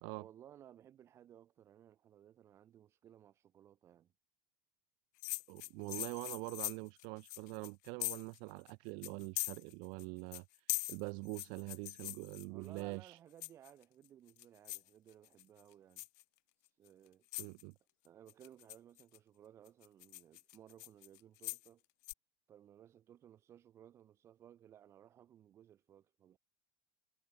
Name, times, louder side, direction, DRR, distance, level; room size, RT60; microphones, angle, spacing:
voice 1, 0.2-4.1 12.5-16.1 16.8-17.3 18.0-21.8 22.5-26.4, right 10 dB, 30° right, 6.8 m, -60 dB
sound 1, 5.2-8.4 8.7-8.8 9.0-10.1 10.3-12.8 13.4-13.8 14.3-14.9 15.3-15.6 16.0-16.2 16.9-17.0 17.3-17.6 18.3-19.2 19.7-21.7 22.0-22.1, left 28 dB, 70° left, 0.5 m, -42 dB
voice 2, 5.5-13.2 17.4-17.7, right 36 dB, 60° right, 2.0 m, -44 dB
cardioid pair, 170°, 9 cm